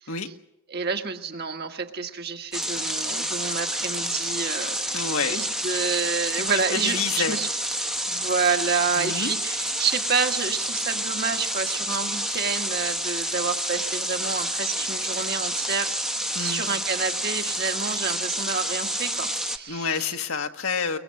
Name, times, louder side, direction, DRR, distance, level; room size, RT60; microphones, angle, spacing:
voice 1, 0.7-4.8 5.3-7.5 8.1-15.9 16.4-20.1, right 5 dB, 50° right, 5 dB, 1.7 m, -29 dB
sound 1, 2.5-19.6, right 1 dB, 5° right, 0.9 m, -29 dB
voice 2, 4.9-5.4 6.3-7.4 9.0-9.4 16.3-16.7 19.7-21.0, left 5 dB, 80° left, 6 dB, 1.5 m, -28 dB
22.5 x 21.5 x 7.7 m, 0.86 s
head